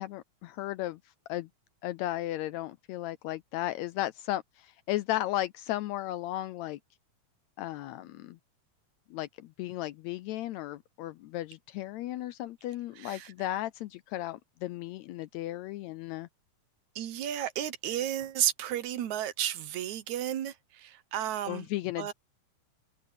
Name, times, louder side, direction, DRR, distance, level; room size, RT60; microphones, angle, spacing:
voice 1, 0.0-1.5 1.8-6.8 7.6-8.4 9.1-16.3 21.5-22.1, left 15 dB, 80° left, 1.7 m, -35 dB
voice 2, 13.0-13.3 17.0-21.7 22.0-22.1, right 11 dB, 70° right, 2.3 m, -33 dB
open air
omnidirectional pair, 3.5 m